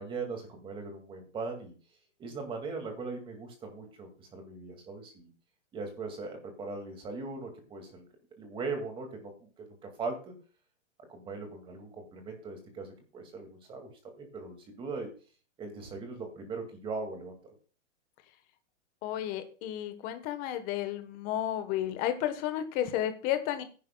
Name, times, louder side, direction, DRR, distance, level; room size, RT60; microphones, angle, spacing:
voice 1, 0.0-1.7 2.2-5.3 5.7-8.0 8.4-10.3 11.1-13.9 14.2-15.1 15.6-17.3, right 3 dB, 15° right, 4 dB, 2.2 m, -39 dB
voice 2, 19.0-23.6, left 11 dB, 25° left, 9 dB, 1.2 m, -32 dB
17.0 x 10.5 x 2.3 m, 0.37 s
hypercardioid pair, 160°, 37 cm